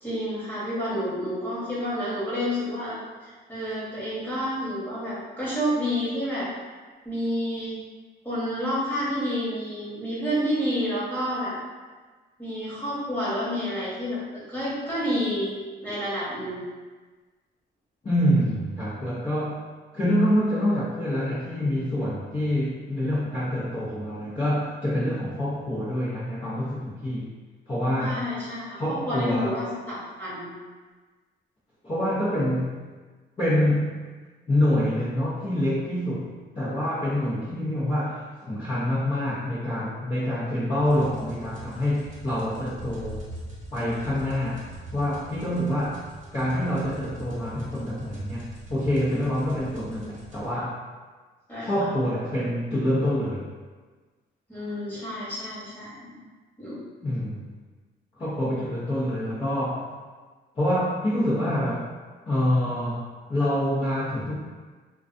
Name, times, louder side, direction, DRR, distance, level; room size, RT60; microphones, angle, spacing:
voice 1, 0.0-6.5 7.0-7.8 8.2-11.5 12.4-16.7 28.0-30.5 51.5-51.7 54.5-56.2 56.6-56.8, equal, 10° left, -9 dB, 1.2 m, -29 dB
voice 2, 18.0-19.6 19.9-27.3 27.7-28.3 28.8-29.6 31.8-32.8 33.4-33.9 34.5-43.3 43.7-46.0 46.3-50.8 51.6-53.5 57.0-57.4 58.2-59.8 60.5-61.9 62.3-64.4, left 1 dB, 30° left, -11 dB, 0.7 m, -26 dB
sound 1, 40.8-50.5, right 1 dB, 40° right, 0.9 m, -42 dB
2.4 x 2.3 x 2.5 m, 1.4 s
cardioid pair, 90°, 20 cm